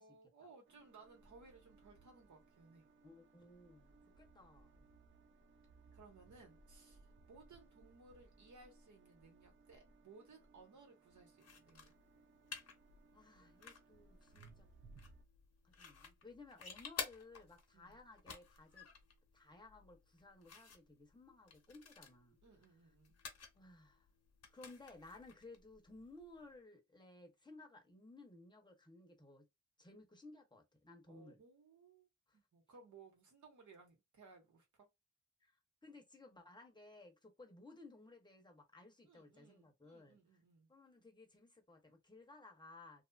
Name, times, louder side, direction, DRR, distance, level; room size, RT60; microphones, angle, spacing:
voice 1, 0.0-2.9 5.9-12.0 17.7-18.0 22.4-23.2 31.1-34.9 39.0-40.7, right 4 dB, 75° right, 1.2 m, -62 dB
sound 1, 0.6-15.2, right 3 dB, 40° right, 0.5 m, -65 dB
voice 2, 3.0-4.7 13.1-14.7 15.6-18.9 19.3-22.4 23.5-24.1 24.5-29.5 29.8-31.4 32.3-32.4 35.4-40.2 40.7-43.0, left 2 dB, 15° left, 0.7 m, -58 dB
sound 2, 11.4-26.5, left 5 dB, 55° left, 0.7 m, -54 dB
2.8 x 2.4 x 2.3 m
wide cardioid pair, 115°, 29 cm